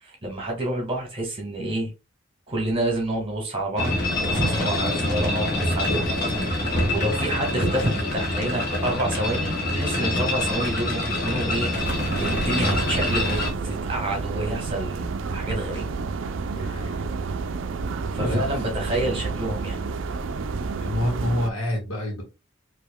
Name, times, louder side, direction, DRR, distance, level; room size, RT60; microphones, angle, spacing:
voice 1, 0.0-1.9 2.5-11.7 12.2-15.9 18.1-19.8, right 1 dB, 25° right, 1.6 m, -28 dB
sound 1, 3.8-13.5, left 1 dB, 50° left, 1.3 m, -25 dB
voice 2, 4.3-4.6 6.0-6.1 15.4-15.7 16.5-17.0 18.1-18.4 20.8-22.2, left 1 dB, 90° left, 1.6 m, -29 dB
sound 2, 11.8-21.5, right 4 dB, 65° right, 0.4 m, -30 dB
4.7 x 2.9 x 2.2 m
head